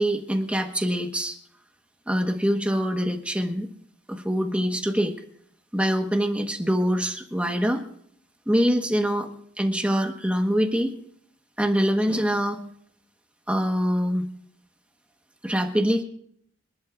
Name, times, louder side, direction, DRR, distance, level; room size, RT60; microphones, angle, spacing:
voice 1, 0.0-1.4 2.1-3.7 4.1-5.1 5.7-7.8 8.5-9.3 9.6-10.9 11.6-12.6 13.5-14.3 15.4-16.0, equal, 5° right, 3 dB, 1.3 m, -24 dB
26.5 x 11.5 x 2.6 m, 0.66 s
head